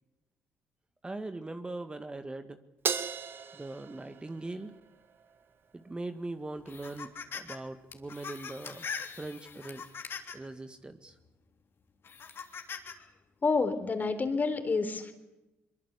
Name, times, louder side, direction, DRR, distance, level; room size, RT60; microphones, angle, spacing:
voice 1, 1.0-2.6 3.5-4.7 5.7-8.9 9.2-9.8 10.3-11.1, right 2 dB, 20° right, 8 dB, 1.8 m, -40 dB
Crash cymbal, 2.8-5.4, right 6 dB, 50° right, 2.0 m, -36 dB
sound 1, 6.7-7.6 7.9-10.5 11.1-11.2 12.0-12.9, left 6 dB, 50° left, 3.4 m, -41 dB
voice 2, 13.4-15.1, left 4 dB, 35° left, 9 dB, 3.8 m, -28 dB
22.5 x 22.5 x 8.3 m, 0.99 s
supercardioid pair, 75°, 5 cm